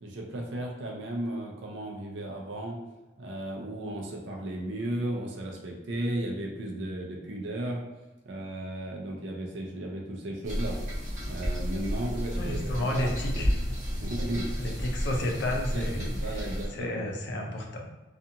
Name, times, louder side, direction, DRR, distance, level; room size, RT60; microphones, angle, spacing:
voice 1, 0.0-2.8 3.2-7.8 8.3-10.8 11.2-13.1 13.3-13.5 14.0-14.5 15.7-17.0, right 1 dB, 70° right, 0 dB, 0.5 m, -35 dB
sound 1, 10.4-16.7, equal, 40° right, 0.9 m, -32 dB
voice 2, 12.3-13.7 14.6-16.5 16.7-18.0, left 1 dB, 60° left, 0 dB, 0.5 m, -32 dB
2.5 x 2.4 x 2.7 m, 1.1 s
head